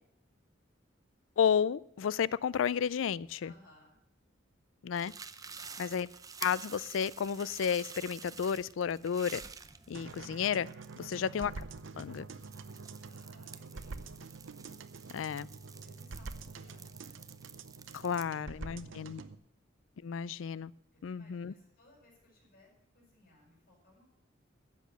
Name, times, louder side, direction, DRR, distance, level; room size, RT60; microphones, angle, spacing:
voice 1, 1.4-3.5 4.8-5.1 5.8-6.1 6.4-9.4 9.9-10.7 11.1-11.5 12.0-12.2 15.1-15.5 17.9-19.2 20.0-20.7 21.0-21.5, left 7 dB, 90° left, 0.4 m, -32 dB
voice 2, 3.4-3.9 5.4-6.0 13.0-14.0 15.8-17.2 18.2-19.2 20.9-24.1, left 1 dB, 50° left, 6.6 m, -63 dB
sound 1, 4.9-18.2, right 6 dB, 20° right, 0.5 m, -50 dB
sound 2, 9.9-19.3, right 4 dB, 80° right, 0.7 m, -46 dB
13.0 x 8.4 x 6.7 m
head